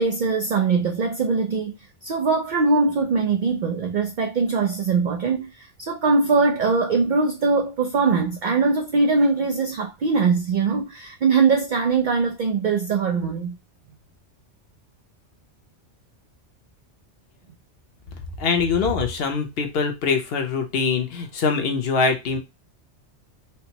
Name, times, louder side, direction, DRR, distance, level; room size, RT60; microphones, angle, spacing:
voice 1, 0.0-13.6, right 4 dB, 60° right, 0.5 m, -21 dB
voice 2, 18.4-22.4, left 5 dB, 60° left, 0.9 m, -23 dB
4.4 x 2.0 x 2.8 m
omnidirectional pair, 1.2 m